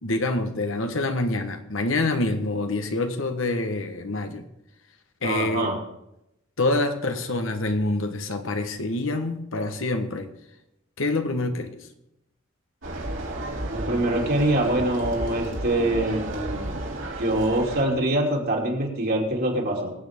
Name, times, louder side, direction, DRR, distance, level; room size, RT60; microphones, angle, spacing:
voice 1, 0.0-4.4 5.2-5.7 6.6-10.3 11.0-11.9, left 2 dB, 70° left, 1.3 m, -26 dB
voice 2, 5.2-5.8 13.7-16.8 17.2-19.9, right 1 dB, 50° right, 2.9 m, -24 dB
sound 1, 12.8-17.8, right 1 dB, 70° right, 3.1 m, -32 dB
23.0 x 8.2 x 3.6 m
head